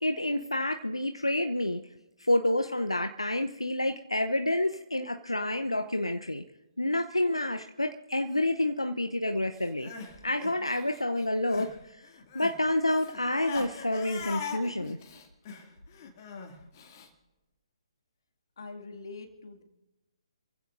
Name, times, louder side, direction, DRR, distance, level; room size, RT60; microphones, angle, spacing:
voice 1, 0.0-1.8 2.2-6.4 6.8-9.9 10.2-12.1 12.3-15.0, left 1 dB, 85° left, 6 dB, 0.8 m, -29 dB
Crying sobbing, 9.6-11.8 12.0-17.1, left 5 dB, 35° left, 2.4 m, -42 dB
voice 2, 18.6-19.6, left 3 dB, 55° left, 3 dB, 2.2 m, -43 dB
27.5 x 15.5 x 2.6 m, 1.0 s
figure-of-eight pair, 135°, 3 cm